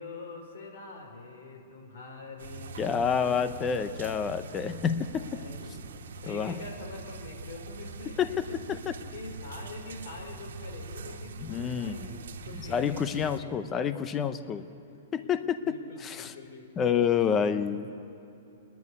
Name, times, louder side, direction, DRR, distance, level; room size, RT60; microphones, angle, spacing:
voice 1, 0.0-3.8 5.2-5.9 6.2-8.6 9.1-13.7 15.2-15.3 15.6-16.7, left 3 dB, 60° left, 1 dB, 4.7 m, -45 dB
sound 1, 2.4-13.4, right 3 dB, 85° right, 1.5 m, -43 dB
voice 2, 2.8-5.4 6.3-6.6 8.2-8.4 8.7-9.0 11.4-12.1 12.6-14.7 15.1-16.3 16.8-17.9, left 7 dB, 15° left, 10 dB, 0.7 m, -28 dB
27.0 x 10.5 x 9.7 m, 2.9 s
hypercardioid pair, 170°, 0 cm